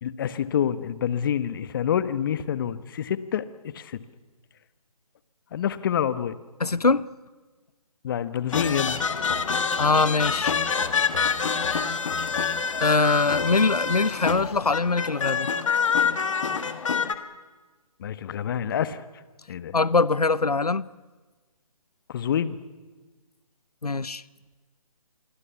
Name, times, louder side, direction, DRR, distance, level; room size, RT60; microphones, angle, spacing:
voice 1, 0.0-3.4 3.7-4.0 5.5-6.3 8.0-9.0 18.0-19.0 19.5-19.7 22.1-22.6, left 9 dB, 35° left, 1.3 m, -27 dB
voice 2, 6.6-7.1 9.8-10.5 12.8-15.5 19.7-20.9 23.8-24.2, left 3 dB, 90° left, 0.8 m, -22 dB
sound 1, 8.5-17.1, left 6 dB, 55° left, 1.8 m, -26 dB
27.5 x 23.0 x 7.1 m
figure-of-eight pair, 145°, 19 cm